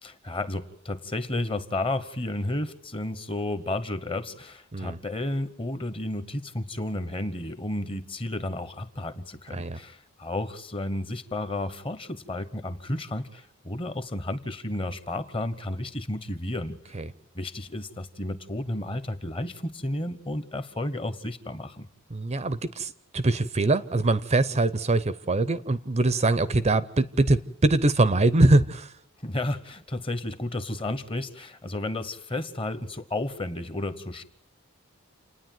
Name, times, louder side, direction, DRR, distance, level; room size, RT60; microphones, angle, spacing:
voice 1, 0.0-17.0 17.3-21.9 29.2-34.2, left 1 dB, 25° left, 12 dB, 1.1 m, -32 dB
voice 2, 22.1-28.9, right 2 dB, 30° right, 15 dB, 0.7 m, -23 dB
29.0 x 9.9 x 9.3 m, 0.74 s
head